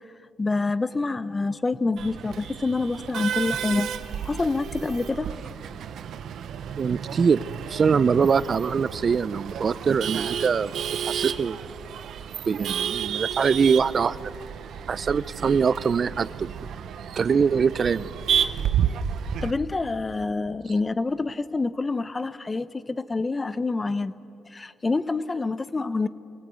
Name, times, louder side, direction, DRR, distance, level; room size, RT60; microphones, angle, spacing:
voice 1, 0.4-3.9 4.2-5.3 19.4-24.1 24.5-26.1, left 3 dB, 25° left, 15 dB, 0.7 m, -27 dB
Male speech man speaking / Laughter / Chatter, 2.0-19.5, right 8 dB, 70° right, 0.8 m, -31 dB
voice 2, 6.8-7.4 7.7-11.6 12.5-14.2 14.9-16.5 17.2-18.1, right 6 dB, 45° right, 18 dB, 0.4 m, -23 dB
23.0 x 17.5 x 8.2 m, 2.8 s
cardioid pair, 90°, 0 cm